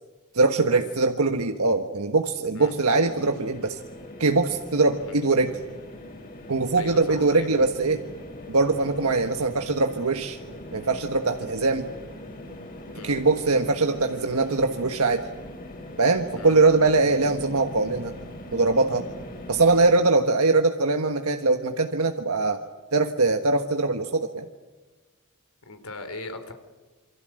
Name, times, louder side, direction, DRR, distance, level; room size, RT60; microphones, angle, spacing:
voice 1, 0.3-3.8 4.2-5.6 6.5-8.0 8.5-10.4 10.7-11.9 13.0-15.3 16.0-18.1 18.5-19.0 19.5-22.6 22.9-24.5, right 3 dB, 80° right, 5 dB, 1.5 m, -22 dB
sound 1, 2.6-19.9, left 1 dB, 40° left, 6.2 m, -41 dB
voice 2, 6.7-7.5 12.9-13.1 16.4-16.5 25.6-26.5, left 3 dB, 85° left, 8 dB, 4.1 m, -38 dB
28.0 x 24.0 x 7.8 m, 1.3 s
head